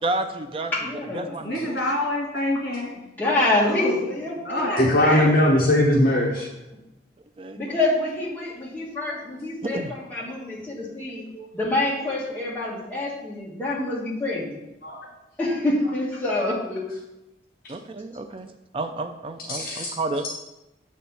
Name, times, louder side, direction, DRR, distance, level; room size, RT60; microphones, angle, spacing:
voice 1, 0.0-0.7 1.1-1.8 7.4-7.6 9.6-9.9 17.7-20.4, right 2 dB, 30° right, 7 dB, 0.4 m, -30 dB
voice 2, 0.7-1.3 3.2-5.2 7.6-11.2 11.5-14.6 15.4-16.9, left 2 dB, 10° left, -6 dB, 1.6 m, -26 dB
voice 3, 1.4-3.0 3.6-4.0 4.4-5.3 11.3-11.5 14.8-15.1, left 1 dB, 70° left, -2 dB, 2.3 m, -28 dB
voice 4, 4.8-6.5 19.5-19.9, left 1 dB, 50° left, -3 dB, 0.9 m, -19 dB
7.3 x 4.3 x 5.6 m, 0.95 s
head